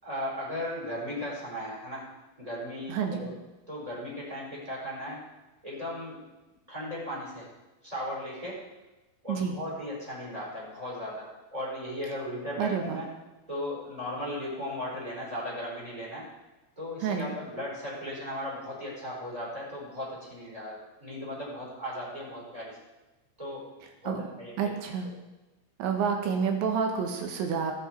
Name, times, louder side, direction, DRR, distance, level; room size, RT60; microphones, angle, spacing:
voice 1, 0.0-2.1 2.4-3.3 3.7-5.2 5.6-6.2 6.7-7.5 7.8-8.6 9.2-13.1 13.5-16.3 16.8-22.8 23.4-23.6 24.0-24.5, left 1 dB, 5° right, -5 dB, 5.4 m, -36 dB
voice 2, 2.9-3.3 9.3-9.5 12.6-13.0 17.0-17.3 24.1-24.3 24.6-25.1 25.8-27.7, right 6 dB, 70° right, 3 dB, 3.9 m, -29 dB
20.5 x 8.4 x 4.8 m, 1.1 s
omnidirectional pair, 5.4 m